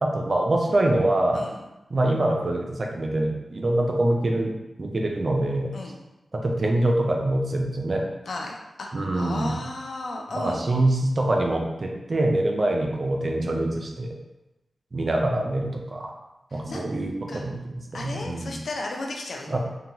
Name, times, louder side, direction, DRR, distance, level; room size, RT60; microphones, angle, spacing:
voice 1, 0.0-1.4 1.9-4.5 4.8-5.7 6.3-8.0 8.9-9.5 10.3-14.1 14.9-16.1 16.5-17.6 17.9-18.6 19.5-19.6, right 1 dB, 50° right, 1 dB, 0.4 m, -24 dB
voice 2, 1.3-1.7 5.7-6.0 8.3-10.6 16.5-16.9 17.3-17.4 17.9-19.6, left 2 dB, 75° left, 1 dB, 0.4 m, -34 dB
2.9 x 2.2 x 2.7 m, 0.98 s
wide cardioid pair, 70°, 0 cm